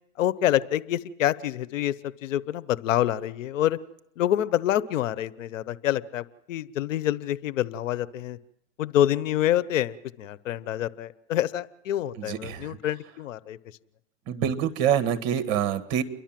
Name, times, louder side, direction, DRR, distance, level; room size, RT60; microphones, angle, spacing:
voice 1, 0.2-3.8 4.2-8.4 8.8-13.6, left 12 dB, 75° left, 17 dB, 1.0 m, -27 dB
voice 2, 12.2-12.8 14.3-16.0, right 9 dB, 45° right, 10 dB, 1.8 m, -26 dB
29.0 x 11.5 x 7.6 m, 0.81 s
hypercardioid pair, 130°, 38 cm